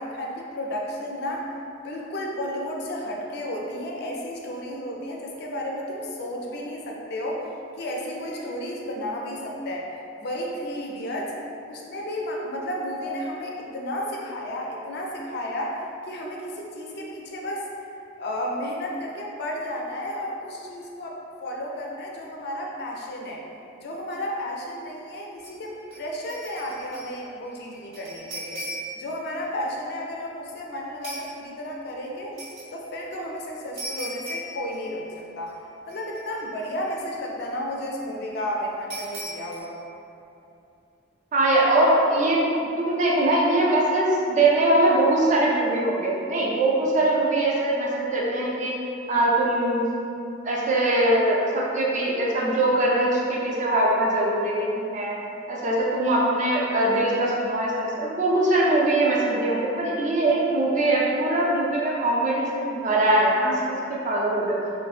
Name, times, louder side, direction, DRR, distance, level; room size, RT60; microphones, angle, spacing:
voice 1, 0.0-1.5 1.8-7.5 7.8-9.8 10.2-11.3 11.7-15.8 16.1-17.7 18.2-23.4 23.8-28.7 29.0-32.4 32.7-35.1 35.4-35.6 35.9-39.8, equal, 55° left, -1 dB, 0.4 m, -32 dB
sound 1, 25.4-25.6 25.9-27.2 27.4-29.1 31.0-31.3 32.4-32.7 33.8-35.2 35.5-35.6 35.9-36.6 38.9-39.6, equal, 80° right, 0.9 m, -37 dB
voice 2, 41.3-42.4 42.8-48.7 49.1-49.8 50.4-55.2 55.5-64.6, right 1 dB, 40° right, -4 dB, 0.4 m, -22 dB
3.2 x 2.1 x 2.4 m, 2.7 s
head